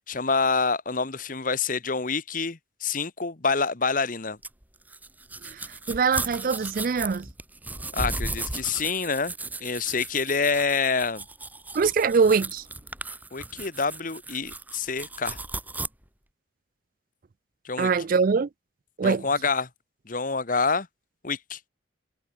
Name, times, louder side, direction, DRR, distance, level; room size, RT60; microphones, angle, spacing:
voice 1, 0.1-4.4 7.9-9.3 9.6-11.2 13.3-15.4 17.6-17.9 19.0-19.7 20.1-20.9 21.2-21.6, left 4 dB, 45° left, 1.2 m, -27 dB
sound 1, 4.4-15.9, right 2 dB, 10° right, 1.5 m, -36 dB
voice 2, 5.9-7.3 11.7-12.6 17.8-18.5 19.0-19.3, right 5 dB, 45° right, 0.4 m, -23 dB
head